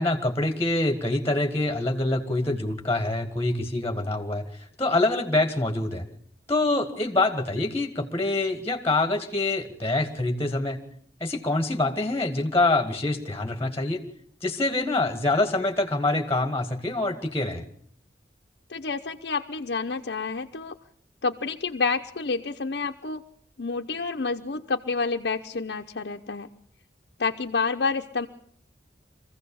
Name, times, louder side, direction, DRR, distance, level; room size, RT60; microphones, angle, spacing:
voice 1, 0.0-4.5 4.8-6.0 6.5-10.8 11.2-14.0 14.4-17.6, left 2 dB, 15° left, 5 dB, 1.7 m, -25 dB
voice 2, 18.7-20.7 21.2-23.2 23.6-26.5 27.2-28.3, left 4 dB, 65° left, 2 dB, 0.8 m, -29 dB
24.5 x 15.5 x 7.0 m, 0.63 s
head